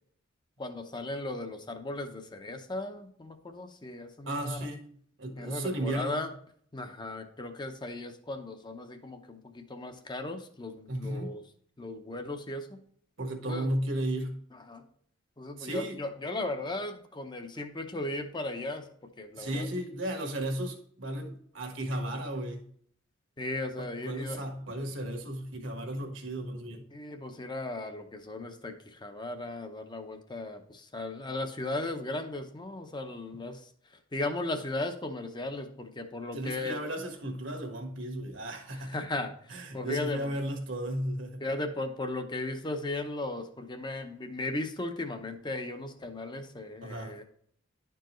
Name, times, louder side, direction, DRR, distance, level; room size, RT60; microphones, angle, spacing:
voice 1, 0.6-4.6 5.4-6.3 6.7-11.4 11.8-12.8 13.5-13.7 14.7-14.8 15.4-18.9 19.2-19.7 23.4-24.4 26.9-33.7 34.1-36.8 38.9-40.3 41.4-47.2, left 2 dB, 20° left, 0.7 m, -36 dB
voice 2, 4.3-4.9 5.2-6.3 10.9-11.3 13.2-14.4 15.6-16.0 19.3-22.6 23.8-26.8 33.3-33.4 36.3-39.0 39.5-41.4 46.8-47.2, right 1 dB, 65° right, 1.4 m, -34 dB
11.0 x 4.6 x 3.0 m
head